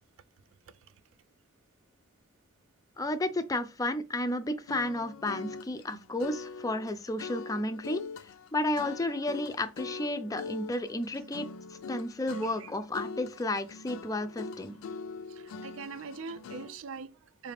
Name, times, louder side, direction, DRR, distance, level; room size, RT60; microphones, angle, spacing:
voice 1, 3.0-8.0 8.5-11.5 11.9-14.8, left 1 dB, 15° left, 0.3 m, -32 dB
sound 1, 4.7-16.8, left 4 dB, 85° left, 0.4 m, -43 dB
voice 2, 15.3-17.5, right 5 dB, 70° right, 0.4 m, -43 dB
4.8 x 2.4 x 3.2 m
head